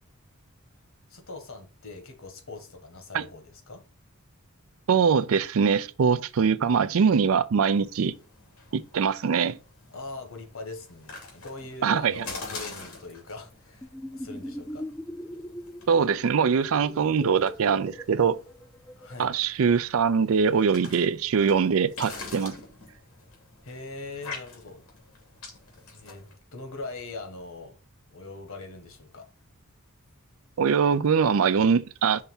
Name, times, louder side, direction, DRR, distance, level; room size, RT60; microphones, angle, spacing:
voice 1, 1.1-3.8 9.9-14.8 19.0-19.3 23.6-24.8 25.9-27.8 28.1-29.3, left 3 dB, 65° left, 1.6 m, -41 dB
voice 2, 4.9-8.1 8.7-9.6 11.8-12.2 15.9-18.4 19.2-22.5 30.6-32.2, right 6 dB, 70° right, 0.4 m, -23 dB
sound 1, 7.6-26.4, left 3 dB, 85° left, 2.7 m, -46 dB
sound 2, 13.8-19.2, equal, 5° left, 0.5 m, -40 dB
5.6 x 3.5 x 5.5 m
head